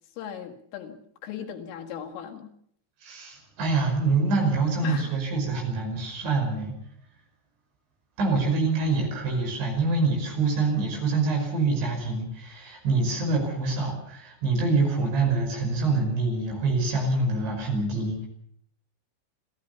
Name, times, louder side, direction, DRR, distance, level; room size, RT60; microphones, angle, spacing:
voice 1, 0.2-2.5 4.8-5.1, left 8 dB, 75° left, 2 dB, 4.5 m, -38 dB
voice 2, 3.0-6.8 8.2-18.3, right 3 dB, 60° right, 3 dB, 7.5 m, -25 dB
27.5 x 15.5 x 6.9 m, 0.65 s
omnidirectional pair, 5.9 m